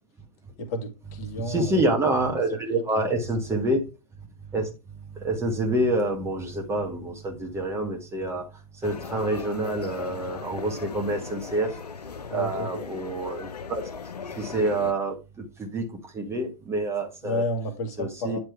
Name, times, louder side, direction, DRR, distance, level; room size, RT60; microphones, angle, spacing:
voice 1, 0.6-2.0 2.5-2.8 3.5-3.6 12.3-12.9 17.2-18.4, left 1 dB, 35° left, 1.5 m, -31 dB
voice 2, 1.5-3.8 4.5-4.7 5.2-8.4 8.8-11.7 12.3-13.8 14.4-15.8 16.1-17.4 18.0-18.4, right 1 dB, 15° right, 1.2 m, -27 dB
sound 1, 8.8-14.9, left 5 dB, 85° left, 0.6 m, -38 dB
9.1 x 3.2 x 4.5 m
figure-of-eight pair, 110°, 20 cm